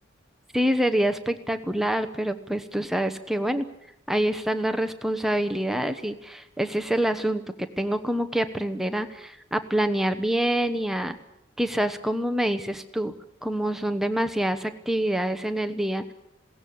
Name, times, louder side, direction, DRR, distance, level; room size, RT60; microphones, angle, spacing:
voice 1, 0.5-3.7 4.1-11.2 11.6-13.1 13.4-16.0, right 1 dB, ahead, 8 dB, 1.0 m, -26 dB
21.0 x 17.5 x 8.7 m, 0.79 s
head